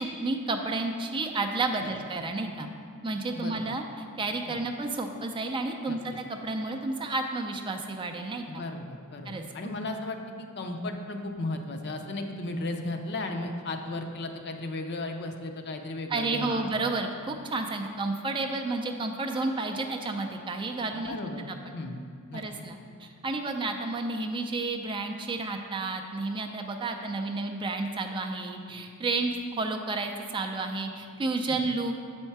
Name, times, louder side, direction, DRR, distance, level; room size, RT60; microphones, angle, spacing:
voice 1, 0.0-2.7 3.0-3.8 4.2-8.4 9.3-9.4 16.1-21.1 21.5-21.7 22.3-31.9, right 3 dB, 20° right, 4 dB, 0.4 m, -31 dB
voice 2, 3.3-3.7 4.5-4.6 5.9-6.2 8.5-16.7 21.1-22.0 22.3-22.4 31.5-31.6, left 2 dB, 50° left, 5 dB, 0.6 m, -35 dB
8.0 x 4.4 x 4.6 m, 2.3 s
head